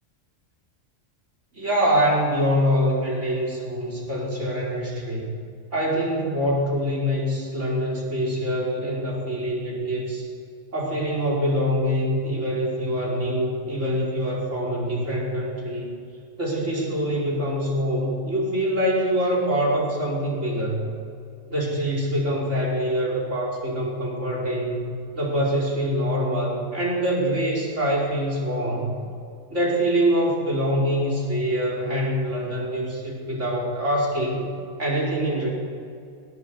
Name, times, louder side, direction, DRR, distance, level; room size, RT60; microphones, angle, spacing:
voice 1, 1.5-5.3 5.7-10.3 10.7-15.9 16.4-20.9 21.5-28.9 29.5-34.4 34.8-35.5, equal, 70° right, -3 dB, 5.4 m, -24 dB
20.0 x 18.0 x 8.1 m, 2.4 s
omnidirectional pair, 1.3 m